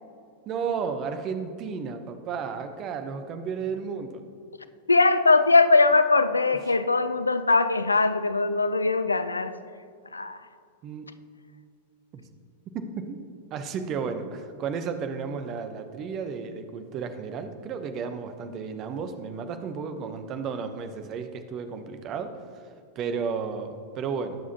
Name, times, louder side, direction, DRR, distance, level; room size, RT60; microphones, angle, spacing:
voice 1, 0.5-4.2 10.8-11.1 12.1-12.2 12.7-13.2 13.5-22.6 22.9-24.4, right 6 dB, 35° right, 8 dB, 0.9 m, -33 dB
voice 2, 4.9-9.5 10.1-10.4, left 3 dB, 80° left, 12 dB, 0.4 m, -21 dB
19.5 x 7.2 x 2.9 m, 2.3 s
figure-of-eight pair, 90°, 0 cm